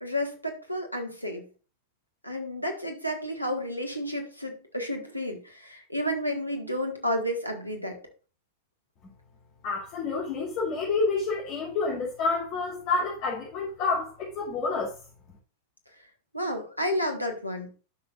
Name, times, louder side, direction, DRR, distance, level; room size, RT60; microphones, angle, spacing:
voice 1, 0.0-1.4 2.2-8.0 16.3-17.8, equal, 90° left, 1.6 m, -31 dB
voice 2, 9.6-14.9, left 4 dB, 45° left, 3.0 m, -28 dB
12.0 x 6.1 x 2.5 m
figure-of-eight pair, 90°, 0 cm